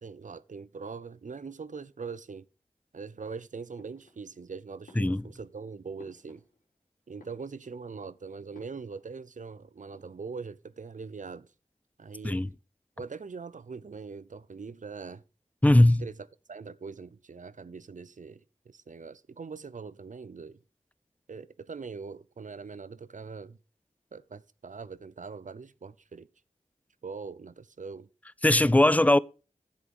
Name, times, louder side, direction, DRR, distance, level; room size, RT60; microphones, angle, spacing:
voice 1, 0.0-2.5 2.9-6.4 7.1-11.5 12.0-12.4 13.0-15.2 16.0-16.2 16.5-20.6 21.3-23.6 24.1-26.3 27.0-28.1, right 5 dB, 65° right, 0.6 m, -42 dB
sound 1, 3.8-4.5 4.8-6.8 7.1-7.9 8.5-9.1 9.4-9.5 9.8-10.5, left 1 dB, 90° left, 4.2 m, -57 dB
voice 2, 15.6-16.0 28.4-29.2, left 1 dB, 10° left, 0.5 m, -20 dB
10.0 x 7.5 x 5.2 m
cardioid pair, 40°, 14 cm